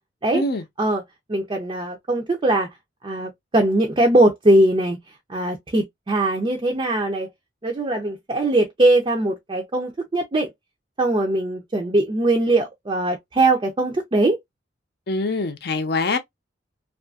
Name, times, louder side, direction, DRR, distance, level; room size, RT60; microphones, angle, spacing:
voice 1, 1.3-2.7 3.0-5.0 5.3-7.3 7.6-10.5 11.0-14.4, right 2 dB, 25° right, 0.4 m, -21 dB
voice 2, 15.1-16.2, left 3 dB, 60° left, 0.6 m, -24 dB
2.6 x 2.4 x 2.3 m
head